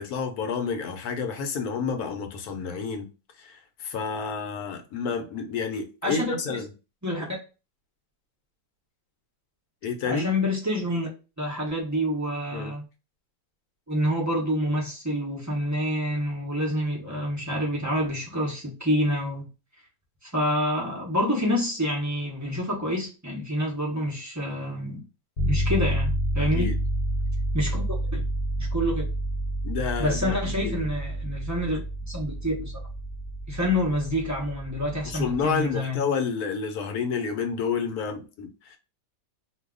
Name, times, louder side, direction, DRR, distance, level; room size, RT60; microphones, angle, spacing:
voice 1, 0.0-3.1 3.4-6.7 9.8-10.3 12.5-12.7 26.4-26.8 29.6-30.4 30.6-30.9 35.1-38.8, left 5 dB, 65° left, 1.1 m, -29 dB
voice 2, 6.0-6.6 7.0-7.4 10.1-11.1 11.4-12.8 13.9-19.5 20.2-25.0 25.4-26.8 27.5-28.3 28.6-29.1 30.0-31.8 32.1-32.7 33.5-36.0, equal, 25° right, 0.4 m, -27 dB
sound 1, 25.4-35.5, equal, 45° left, 0.6 m, -29 dB
2.7 x 2.3 x 3.7 m
omnidirectional pair, 1.9 m